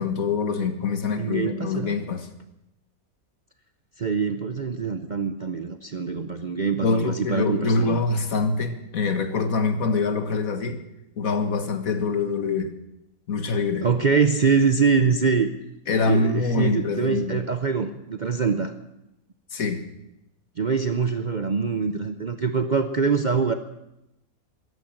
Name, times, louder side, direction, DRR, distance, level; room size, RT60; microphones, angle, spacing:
voice 1, 0.0-2.3 6.8-10.8 11.2-12.7 13.3-13.9 15.9-17.4 19.5-19.8, left 4 dB, 65° left, 8 dB, 1.9 m, -25 dB
voice 2, 1.2-1.9 4.0-8.0 13.8-15.5 16.0-18.8 20.6-23.5, right 5 dB, 45° right, 9 dB, 0.6 m, -24 dB
14.0 x 13.0 x 7.7 m, 0.89 s
omnidirectional pair, 1.6 m